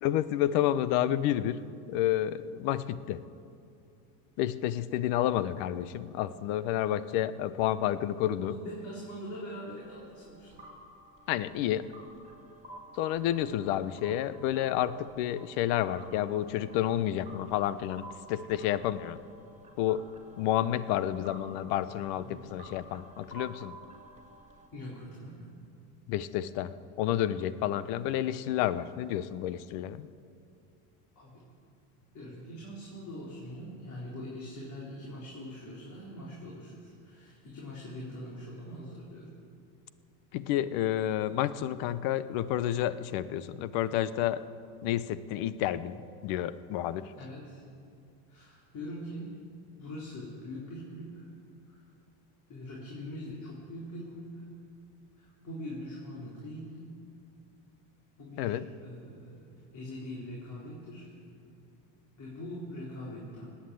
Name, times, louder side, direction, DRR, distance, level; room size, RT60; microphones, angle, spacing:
voice 1, 0.0-1.6 1.9-3.2 4.4-8.5 11.3-11.9 13.0-19.2 19.8-20.0 20.4-23.8 26.1-30.1 40.3-44.4 44.8-47.1 58.4-58.7, left 12 dB, 70° left, 15 dB, 0.8 m, -30 dB
voice 2, 8.4-10.6 22.1-22.4 24.7-25.5 31.2-31.5 32.1-39.3 47.2-47.6 48.3-49.3 49.8-51.3 51.7-51.8 52.5-54.5 55.2-56.9 58.2-61.1 62.2-63.5, left 1 dB, 45° left, -5 dB, 3.8 m, -43 dB
sound 1, 9.8-24.7, right 1 dB, 15° right, 2.1 m, -52 dB
19.0 x 8.6 x 8.4 m, 2.5 s
supercardioid pair, 120°, 42 cm